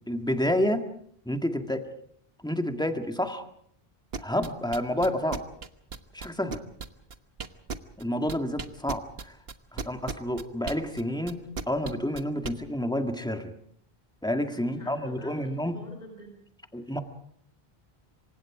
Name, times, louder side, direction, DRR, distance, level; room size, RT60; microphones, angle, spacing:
voice 1, 0.1-0.9 1.3-1.9 2.4-3.5 4.2-5.4 6.1-6.6 8.0-9.4 9.7-13.5 14.2-15.8 16.7-17.0, left 1 dB, 5° left, 5 dB, 1.9 m, -29 dB
sound 1, 4.1-8.0 8.3-12.5, right 5 dB, 75° right, 1.5 m, -35 dB
voice 2, 14.5-16.4 16.8-17.0, right 1 dB, 45° left, 3 dB, 4.0 m, -48 dB
27.0 x 25.0 x 5.0 m, 0.65 s
omnidirectional pair, 1.0 m